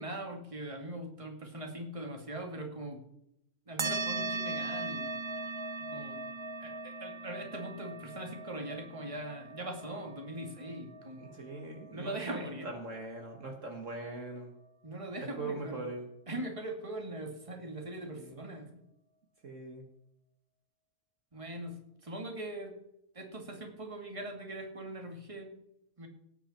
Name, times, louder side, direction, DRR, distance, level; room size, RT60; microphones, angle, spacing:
voice 1, 0.0-3.0 3.7-5.0 5.9-6.2 6.6-11.3 11.9-12.7 14.8-15.8 16.3-18.8 21.3-22.8 23.1-25.5 26.0-26.1, right 1 dB, 20° right, 2 dB, 2.4 m, -41 dB
sound 1, 3.8-12.7, right 3 dB, 35° right, 0.4 m, -39 dB
voice 2, 10.8-14.5 15.2-16.1 18.2-18.4 19.4-19.9, right 2 dB, 55° right, 2 dB, 1.9 m, -41 dB
18.0 x 9.1 x 4.4 m, 0.80 s
omnidirectional pair, 1.6 m